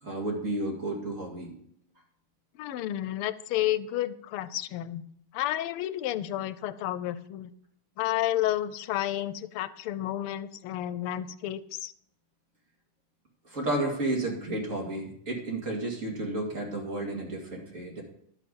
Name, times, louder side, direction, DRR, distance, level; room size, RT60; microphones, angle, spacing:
voice 1, 0.0-1.5 13.4-18.0, right 2 dB, 35° right, -1 dB, 2.6 m, -32 dB
voice 2, 2.6-5.0 5.3-7.5 8.0-11.9, left 13 dB, 85° left, 15 dB, 1.5 m, -31 dB
11.5 x 6.1 x 5.4 m, 0.70 s
omnidirectional pair, 2.4 m